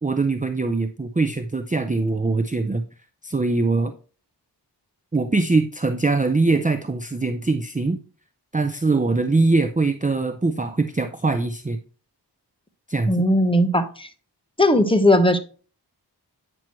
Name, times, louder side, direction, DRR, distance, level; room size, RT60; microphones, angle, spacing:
voice 1, 0.0-2.8 3.2-3.9 5.1-8.0 8.5-11.8 12.9-13.1, right 3 dB, 20° right, 8 dB, 0.5 m, -22 dB
voice 2, 13.1-14.1 14.6-15.4, left 1 dB, 10° left, 7 dB, 1.1 m, -18 dB
8.9 x 6.1 x 3.1 m, 0.38 s
wide cardioid pair, 45°, 43 cm